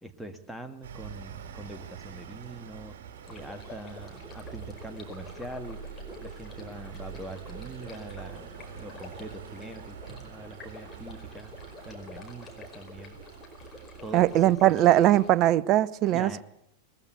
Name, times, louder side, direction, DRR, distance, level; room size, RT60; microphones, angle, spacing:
voice 1, 0.0-2.9 3.3-5.8 6.2-11.5 11.9-13.2 14.0-14.9 16.1-16.4, right 1 dB, 5° right, 1.9 m, -43 dB
sound 1, 0.8-15.5, right 8 dB, 55° right, 3.7 m, -45 dB
sound 2, 3.2-15.3, left 2 dB, 20° left, 5.0 m, -48 dB
voice 2, 14.1-16.4, right 13 dB, 40° right, 0.7 m, -21 dB
21.0 x 15.0 x 8.4 m
figure-of-eight pair, 90°, 0 cm